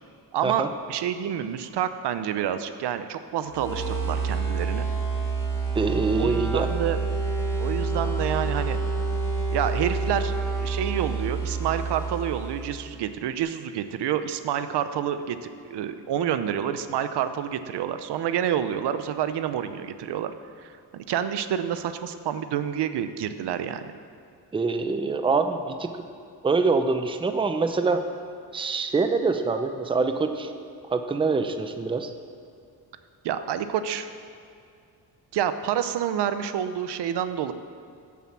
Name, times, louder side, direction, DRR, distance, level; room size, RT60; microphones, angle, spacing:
voice 1, 0.3-4.9 6.1-7.0 7.6-8.8 9.5-10.3 10.6-20.3 20.6-23.9 33.2-34.1 35.3-37.5, right 9 dB, 80° right, 11 dB, 0.7 m, -28 dB
sound 1, 3.5-13.0, right 4 dB, 5° left, 2.2 m, -28 dB
voice 2, 5.7-6.7 24.5-26.0 26.4-28.0 28.5-30.5 30.9-32.1, right 4 dB, 15° right, 7 dB, 0.5 m, -25 dB
10.5 x 7.4 x 7.4 m, 2.4 s
cardioid pair, 145°, 40 cm